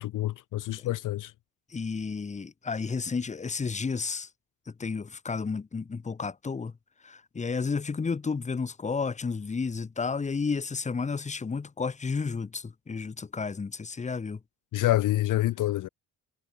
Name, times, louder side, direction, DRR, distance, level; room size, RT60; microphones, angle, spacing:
voice 1, 0.0-1.3 14.7-15.9, left 15 dB, 65° left, 0.6 m, -27 dB
voice 2, 1.7-4.3 4.8-6.7 7.0-14.4, left 5 dB, 20° left, 0.8 m, -32 dB
cardioid pair, 90°, 34 cm